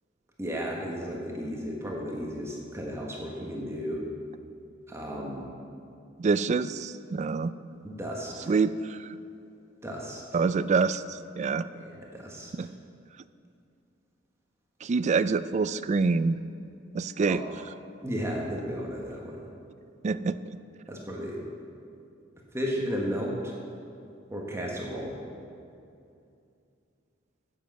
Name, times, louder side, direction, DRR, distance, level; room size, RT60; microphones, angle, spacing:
voice 1, 0.4-4.0 4.9-5.5 7.8-8.5 9.8-10.2 11.7-12.7 17.2-17.4 18.0-19.4 20.9-21.4 22.5-23.6 24.3-25.2, equal, 15° right, -2 dB, 1.3 m, -34 dB
voice 2, 6.2-7.5 8.5-9.1 10.3-11.7 12.5-12.7 14.8-16.4 16.9-17.4 20.0-20.6, right 4 dB, 35° right, 14 dB, 0.3 m, -26 dB
9.9 x 7.4 x 7.7 m, 2.5 s
head